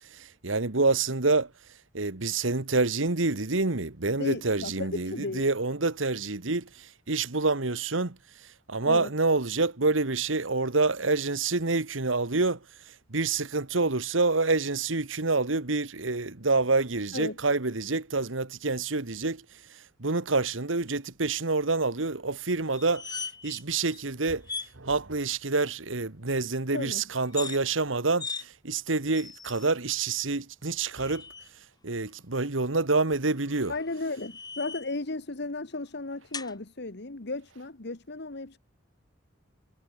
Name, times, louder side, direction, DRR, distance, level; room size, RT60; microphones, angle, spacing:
voice 1, 0.1-1.5 1.9-8.2 8.7-12.6 13.1-19.4 20.0-24.4 24.8-31.2 31.8-33.7, right 3 dB, 85° right, 1.7 m, -27 dB
voice 2, 4.2-5.4 8.8-9.1 17.1-17.4 26.7-27.0 33.7-38.6, left 2 dB, 60° left, 1.5 m, -35 dB
sound 1, 22.7-23.6 23.9-24.0 24.4-24.7 27.2-27.6 28.2-28.4 29.1-29.7 30.7-31.5 33.4-35.0 36.3-36.5, left 5 dB, 20° left, 5.9 m, -39 dB
head